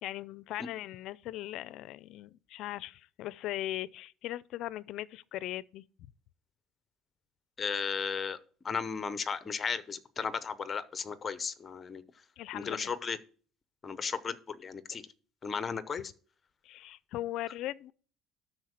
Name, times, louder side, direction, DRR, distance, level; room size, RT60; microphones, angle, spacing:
voice 1, 0.0-5.8 12.4-12.9 16.6-17.9, left 14 dB, 60° left, 0.5 m, -39 dB
voice 2, 7.6-8.4 8.6-12.0 12.5-13.2 13.8-15.1 15.4-16.1, left 6 dB, 25° left, 0.8 m, -35 dB
12.5 x 4.4 x 6.4 m
cardioid pair, 155°, 0 cm